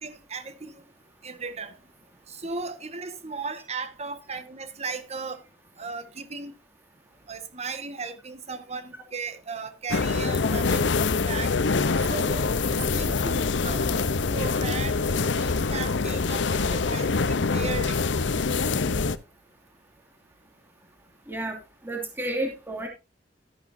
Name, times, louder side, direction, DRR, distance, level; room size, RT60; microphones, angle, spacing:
voice 1, 0.0-0.7 1.2-1.7 2.3-5.4 5.8-6.5 7.3-10.8 11.2-11.5 12.1-18.0, right 4 dB, 35° right, 1.5 m, -36 dB
sound 1, 9.9-19.2, left 4 dB, 90° left, 0.7 m, -25 dB
voice 2, 21.8-22.9, right 1 dB, 10° right, 2.5 m, -31 dB
13.0 x 11.0 x 2.7 m
head